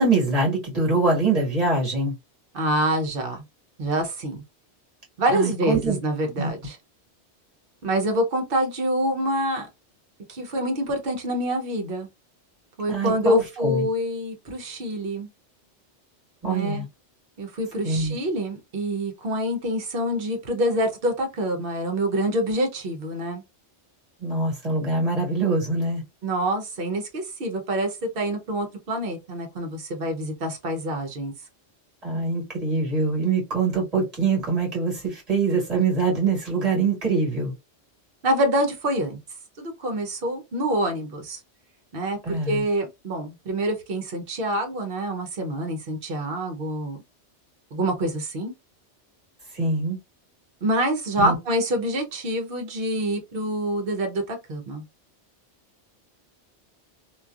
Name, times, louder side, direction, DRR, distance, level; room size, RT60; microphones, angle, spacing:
voice 1, 0.0-2.1 5.3-6.0 6.3-6.5 12.9-13.8 16.4-16.8 17.8-18.2 24.2-26.0 32.0-37.5 42.2-42.6 49.5-50.0 51.2-51.3, right 3 dB, 35° right, 1.7 m, -24 dB
voice 2, 2.5-3.4 3.8-4.4 5.2-6.8 7.8-9.7 10.3-12.1 12.8-15.3 16.4-16.9 17.4-23.4 26.2-31.3 38.2-39.2 39.6-41.4 41.9-47.0 47.7-48.5 50.6-54.8, right 1 dB, 55° right, 0.9 m, -26 dB
3.1 x 2.3 x 2.3 m
omnidirectional pair, 1.2 m